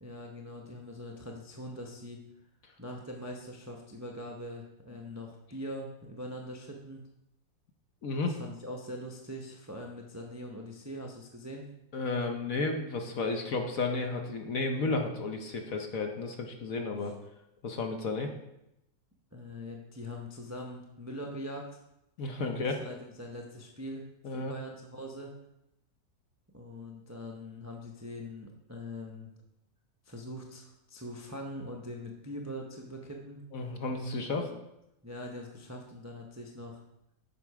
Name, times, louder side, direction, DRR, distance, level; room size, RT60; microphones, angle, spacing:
voice 1, 0.0-2.2 2.8-7.0 8.3-11.6 19.3-21.7 22.4-24.1 24.3-25.3 26.5-29.3 30.0-33.4 34.3-34.5 35.0-36.8, equal, 20° right, 1 dB, 0.4 m, -42 dB
voice 2, 8.0-8.4 11.9-17.1 17.6-18.3 22.2-22.8 24.2-24.5 33.5-34.5, left 3 dB, 55° left, 4 dB, 1.2 m, -32 dB
8.3 x 6.0 x 4.8 m, 0.86 s
omnidirectional pair, 2.0 m